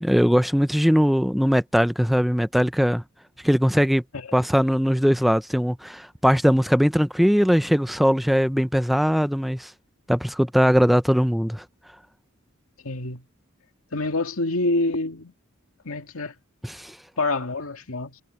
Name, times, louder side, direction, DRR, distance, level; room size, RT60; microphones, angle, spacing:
voice 1, 0.0-3.0 3.4-4.0 4.3-9.7 10.1-11.6 16.6-17.0, equal, ahead, 0.4 m, -20 dB
voice 2, 12.8-13.3 13.9-15.3 15.8-16.3 17.2-18.2, left 2 dB, 85° left, 2.1 m, -27 dB
head